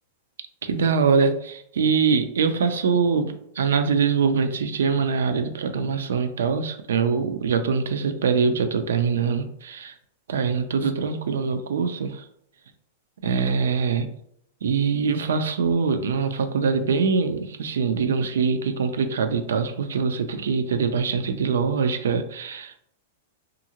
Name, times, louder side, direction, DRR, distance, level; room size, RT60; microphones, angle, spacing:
voice 1, 0.6-9.9 10.3-12.2 13.2-14.1 14.6-22.8, right 5 dB, 90° right, 8 dB, 0.4 m, -23 dB
2.7 x 2.5 x 2.8 m, 0.72 s
supercardioid pair, 145°, 0 cm